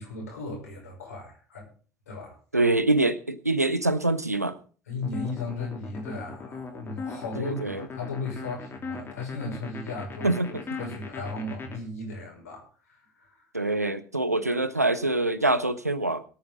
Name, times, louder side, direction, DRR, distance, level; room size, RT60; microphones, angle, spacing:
voice 1, 0.0-1.7 2.1-2.4 4.9-12.6 12.9-13.4, left 3 dB, 75° left, 0 dB, 5.4 m, -36 dB
voice 2, 2.5-4.6 7.4-7.8 10.2-10.6 13.5-16.2, right 2 dB, 90° right, 14 dB, 0.8 m, -25 dB
sound 1, 5.0-11.8, left 4 dB, 30° left, 3.2 m, -38 dB
22.5 x 9.1 x 3.7 m, 0.39 s
figure-of-eight pair, 65°, 8 cm